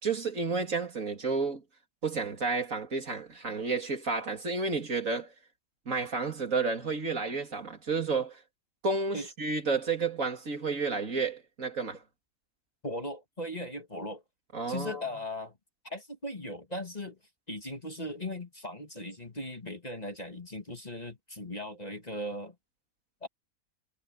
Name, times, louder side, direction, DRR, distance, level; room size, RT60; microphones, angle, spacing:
voice 1, 0.0-1.6 2.0-5.3 5.9-8.4 8.8-12.0 14.5-15.0, right 4 dB, 60° right, 3.0 m, -31 dB
voice 2, 12.8-14.2 14.7-15.5 15.8-17.2 17.5-22.6 23.2-23.3, left 1 dB, 25° left, 2.0 m, -38 dB
omnidirectional pair, 1.6 m